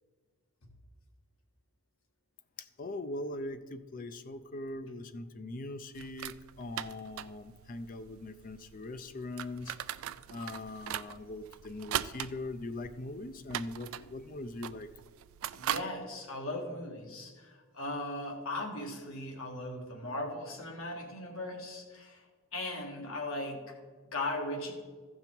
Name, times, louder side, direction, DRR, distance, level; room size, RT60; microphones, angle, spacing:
voice 1, 2.6-9.8 10.3-14.9, left 2 dB, 40° left, 11 dB, 0.5 m, -41 dB
sound 1, 5.9-15.8, right 11 dB, 70° right, 0.3 m, -41 dB
voice 2, 15.5-22.2 22.5-23.7 24.1-24.7, left 1 dB, 75° left, 1 dB, 1.7 m, -38 dB
14.5 x 5.5 x 4.5 m, 1.5 s
head